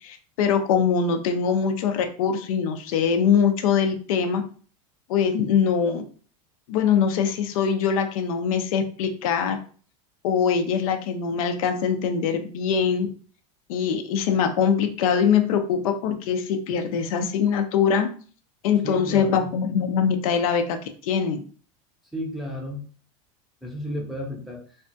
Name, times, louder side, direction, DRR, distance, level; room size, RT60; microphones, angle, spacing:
voice 1, 0.0-4.4 5.1-6.0 6.7-9.6 10.2-13.1 13.7-18.1 18.6-20.8 21.0-21.4, left 7 dB, 80° left, 7 dB, 0.5 m, -23 dB
voice 2, 18.8-19.5 22.1-22.8 23.6-24.6, equal, ahead, -3 dB, 0.6 m, -32 dB
3.3 x 2.2 x 2.7 m, 0.41 s
supercardioid pair, 145°, 18 cm